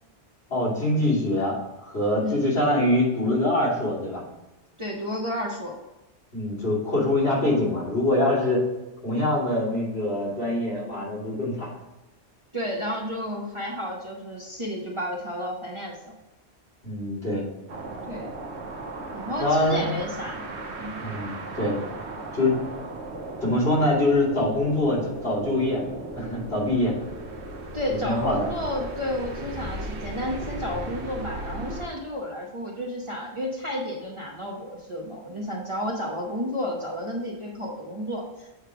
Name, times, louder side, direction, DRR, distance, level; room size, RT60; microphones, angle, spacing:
voice 1, 0.5-4.2 6.3-8.6 9.0-11.7 16.8-17.5 19.4-19.9 21.0-21.8 22.3-22.6 23.4-25.8 26.1-26.9 27.9-28.5, left 1 dB, 65° left, -7 dB, 3.1 m, -24 dB
voice 2, 4.8-5.7 12.5-16.1 18.1-18.3 19.1-20.4 20.8-21.0 27.7-38.5, left 1 dB, 30° right, -2 dB, 1.0 m, -31 dB
sound 1, 17.7-31.9, right 2 dB, 75° right, 1.2 m, -36 dB
8.0 x 3.3 x 5.8 m, 0.98 s
omnidirectional pair, 1.1 m